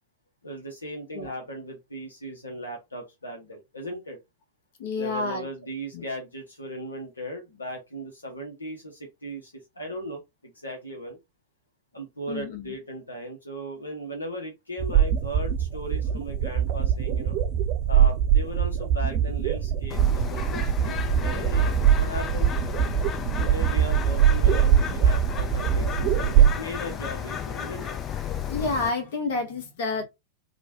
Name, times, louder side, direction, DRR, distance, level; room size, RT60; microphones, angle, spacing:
voice 1, 0.4-4.2 4.9-10.2 10.5-11.2 11.9-17.4 17.9-22.5 23.4-28.0, equal, 80° left, 0.8 m, -37 dB
voice 2, 4.8-5.4 5.9-6.0 12.3-12.8 28.5-30.0, left 3 dB, 55° left, 1.0 m, -29 dB
sound 1, 14.8-26.5, right 9 dB, 40° right, 0.6 m, -22 dB
Bird, 19.9-28.9, left 8 dB, 25° left, 0.4 m, -33 dB
3.0 x 2.2 x 2.8 m
figure-of-eight pair, 90°, 0 cm